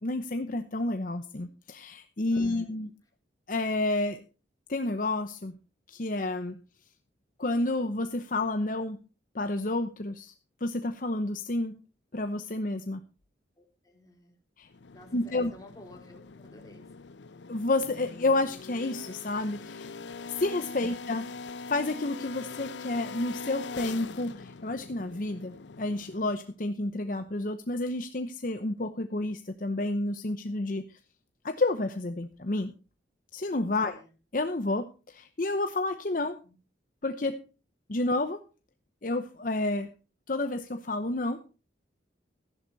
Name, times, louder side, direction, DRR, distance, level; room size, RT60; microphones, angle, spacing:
voice 1, 0.0-2.9 3.5-4.2 4.7-5.6 5.9-6.6 7.4-9.0 9.3-10.3 10.6-11.8 12.1-13.0 14.6-14.7 15.1-15.5 17.5-19.9 20.3-21.3 21.7-31.0 31.4-32.7 33.3-34.0 34.3-36.4 37.0-37.4 37.9-38.4 39.0-39.9 40.3-41.4, left 2 dB, 45° left, 8 dB, 0.8 m, -30 dB
voice 2, 2.3-2.8 13.6-14.3 14.9-16.9 33.7-34.1 36.4-36.5, left 1 dB, 20° left, 1 dB, 3.5 m, -52 dB
sound 1, 14.7-26.5, left 4 dB, 80° left, 0.6 m, -43 dB
14.5 x 11.0 x 4.0 m, 0.34 s
head